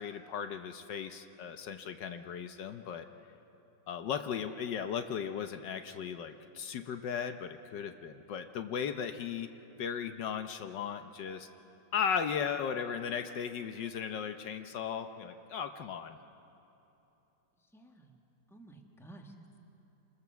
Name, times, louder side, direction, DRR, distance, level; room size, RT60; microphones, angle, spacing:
voice 1, 0.0-3.1 3.9-9.5 9.8-11.5 11.9-16.2, left 7 dB, 75° left, 8 dB, 1.5 m, -36 dB
voice 2, 17.6-18.2 18.5-19.6, right 2 dB, ahead, 2 dB, 1.5 m, -54 dB
26.5 x 21.0 x 7.0 m, 2.9 s
omnidirectional pair, 2.0 m